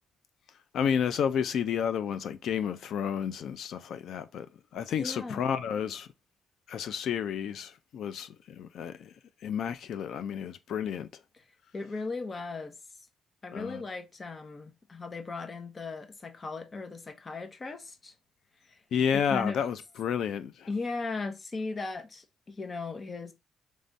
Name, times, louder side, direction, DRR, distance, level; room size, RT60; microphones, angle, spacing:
voice 1, 0.7-4.5 4.7-6.1 6.7-9.1 9.4-11.1 13.5-13.8 18.9-20.7, left 8 dB, 70° left, 0.6 m, -31 dB
voice 2, 5.0-5.4 11.7-12.7 13.4-18.1 18.6-18.8 19.3-19.6 20.7-23.3, left 3 dB, 35° left, 1.0 m, -37 dB
3.7 x 3.2 x 4.1 m
cardioid pair, 90°, 0 cm